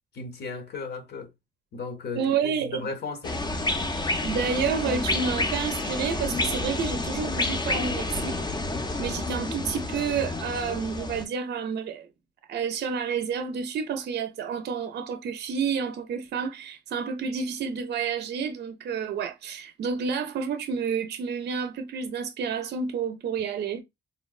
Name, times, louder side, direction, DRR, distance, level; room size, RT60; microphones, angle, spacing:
voice 1, 0.2-1.3 1.7-3.4, left 4 dB, 55° left, 0.8 m, -35 dB
voice 2, 2.2-2.8 4.2-8.4 9.0-12.1 12.5-23.8, right 6 dB, 55° right, 0.5 m, -30 dB
sound 1, 3.2-11.2, left 2 dB, 20° left, 0.5 m, -29 dB
3.8 x 2.1 x 2.3 m
cardioid pair, 90°, 20 cm